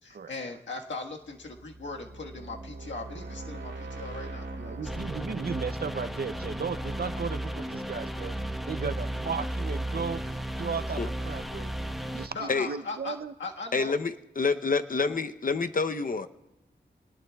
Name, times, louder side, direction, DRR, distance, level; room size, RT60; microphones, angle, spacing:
voice 1, 0.0-4.8 12.0-13.9, left 3 dB, 85° left, 1 dB, 1.5 m, -39 dB
sound 1, 1.3-10.1, right 2 dB, 85° right, 2.1 m, -43 dB
voice 2, 4.6-8.4 8.6-11.7 12.1-13.3, right 5 dB, 55° right, 12 dB, 0.6 m, -35 dB
sound 2, 4.8-12.3, right 1 dB, ahead, 1.1 m, -34 dB
voice 3, 13.7-16.3, left 4 dB, 50° left, 9 dB, 0.8 m, -27 dB
27.0 x 19.5 x 2.3 m, 0.92 s
wide cardioid pair, 60°, 19 cm